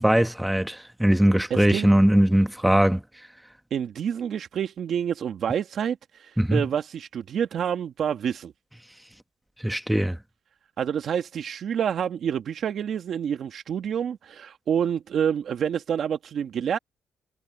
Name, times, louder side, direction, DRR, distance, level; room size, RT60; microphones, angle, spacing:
voice 1, 0.0-3.0 6.4-6.7 9.6-10.2, right 1 dB, 5° right, 1.3 m, -20 dB
voice 2, 1.5-1.9 3.7-8.5 10.8-16.8, right 8 dB, 60° right, 1.5 m, -28 dB
cardioid pair, 90°, 0 cm